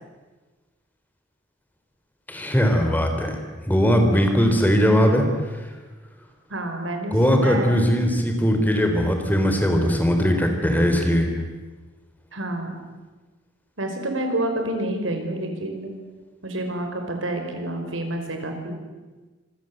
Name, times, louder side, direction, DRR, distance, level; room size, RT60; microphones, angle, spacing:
voice 1, 2.3-3.4 3.6-5.7 7.1-11.3, equal, 10° left, 4 dB, 3.6 m, -20 dB
voice 2, 6.5-7.2 7.4-7.8 12.3-12.8 13.8-15.9 16.4-18.8, right 1 dB, 85° right, 4 dB, 5.4 m, -28 dB
26.5 x 24.5 x 7.9 m, 1.3 s
head